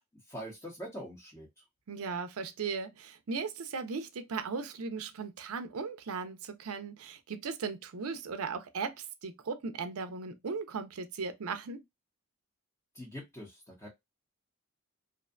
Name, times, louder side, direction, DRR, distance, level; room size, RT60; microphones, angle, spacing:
voice 1, 0.3-1.6 12.9-13.9, equal, 15° left, 0.7 m, -44 dB
voice 2, 1.9-11.8, right 5 dB, 75° right, 0.5 m, -37 dB
2.6 x 2.2 x 2.4 m
head